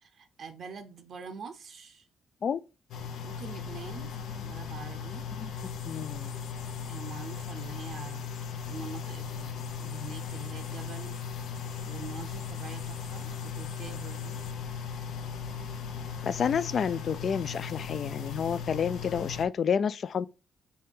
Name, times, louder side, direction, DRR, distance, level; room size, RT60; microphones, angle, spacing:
voice 1, 0.0-2.1 3.2-5.3 6.9-8.3 8.7-14.4, right 5 dB, 60° right, 0.6 m, -45 dB
sound 1, 2.9-19.4, left 6 dB, 80° left, 0.7 m, -37 dB
voice 2, 5.9-6.3 16.2-20.3, left 7 dB, 55° left, 0.3 m, -29 dB
4.2 x 2.7 x 3.6 m
cardioid pair, 90°, 0 cm